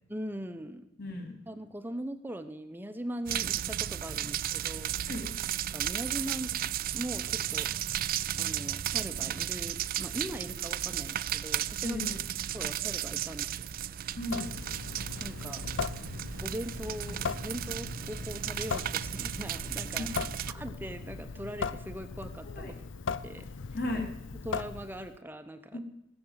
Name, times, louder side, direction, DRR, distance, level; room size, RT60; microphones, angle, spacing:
voice 1, 0.1-0.9 1.5-4.9 5.7-7.7 8.4-12.0 12.5-13.7 15.2-15.6 16.4-22.6 23.2-23.5 24.4-25.8, equal, 10° right, 8 dB, 0.7 m, -40 dB
voice 2, 1.0-1.3 5.1-5.3 11.8-12.2 14.2-14.5 20.0-20.2 22.4-22.7 23.7-24.1 25.7-25.8, left 1 dB, 55° left, 3 dB, 2.6 m, -35 dB
sound 1, 3.3-20.5, right 11 dB, 50° right, 0.4 m, -34 dB
Water tap faucet / Sink (filling or washing) / Drip, 14.2-25.2, left 5 dB, 75° left, 0.6 m, -39 dB
17.0 x 7.1 x 8.0 m, 0.90 s
head